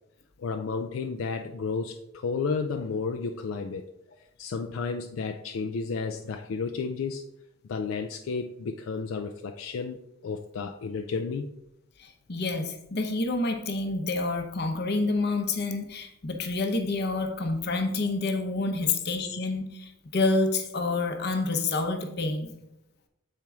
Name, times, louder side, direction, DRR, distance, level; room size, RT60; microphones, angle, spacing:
voice 1, 0.4-3.9 4.4-7.2 7.7-10.0 10.2-11.5 18.8-18.9, left 4 dB, 75° left, 6 dB, 0.4 m, -32 dB
voice 2, 12.0-22.5, left 3 dB, 50° left, 5 dB, 0.8 m, -28 dB
7.4 x 4.4 x 3.5 m, 0.87 s
head